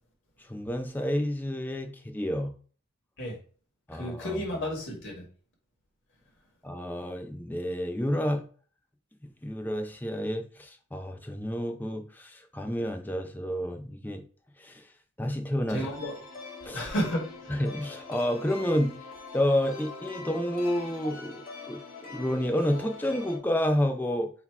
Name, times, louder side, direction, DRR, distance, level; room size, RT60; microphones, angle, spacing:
voice 1, 0.4-2.5 3.9-4.4 6.6-8.5 9.4-14.2 14.6-14.8 15.2-15.9 16.6-16.9 17.5-18.9 19.3-21.4 21.7-24.3, equal, 10° left, 5 dB, 0.5 m, -30 dB
voice 2, 3.9-5.2 15.7-16.2 16.7-17.2, equal, 55° left, -1 dB, 1.7 m, -31 dB
sound 1, 15.8-23.4, left 4 dB, 40° left, 1.2 m, -43 dB
4.0 x 2.8 x 4.6 m, 0.42 s
head